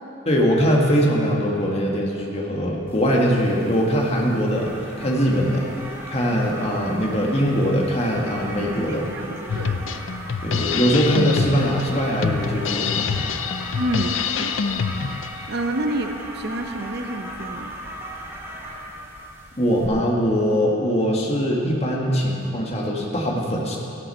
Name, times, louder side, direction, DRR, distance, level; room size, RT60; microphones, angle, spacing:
voice 1, 0.3-5.7 6.1-9.1 10.4-13.2 19.6-23.8, equal, 35° left, -2 dB, 1.8 m, -21 dB
sound 1, 2.9-19.9, right 1 dB, 15° right, 1.4 m, -37 dB
voice 2, 8.9-10.1 13.7-14.8 15.5-17.7, right 1 dB, 60° right, 5 dB, 0.9 m, -29 dB
Drum kit, 9.5-15.5, left 6 dB, 80° left, 0.5 m, -26 dB
15.0 x 11.5 x 4.4 m, 2.8 s
head